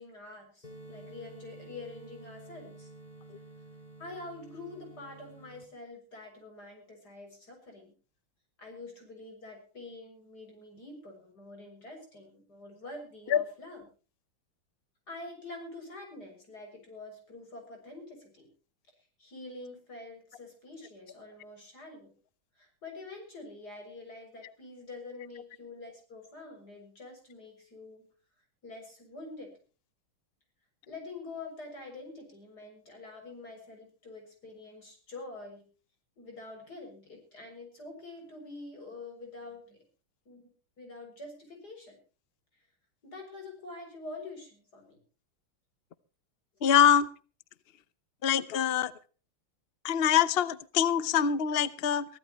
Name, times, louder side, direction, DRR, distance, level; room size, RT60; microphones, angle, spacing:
voice 1, 0.0-2.9 4.0-7.9 8.6-13.9 15.1-18.5 19.2-22.1 22.6-28.1 28.6-29.5 30.9-35.6 36.2-39.8 40.3-40.5 40.8-42.0 43.0-45.0, left 2 dB, 45° left, 3 dB, 7.5 m, -46 dB
sound 1, 0.6-5.6, right 2 dB, 20° left, 2.8 m, -50 dB
voice 2, 46.6-47.1 48.2-48.9 49.8-52.1, left 9 dB, 70° left, 16 dB, 0.5 m, -24 dB
23.5 x 16.0 x 3.1 m, 0.37 s
omnidirectional pair, 2.3 m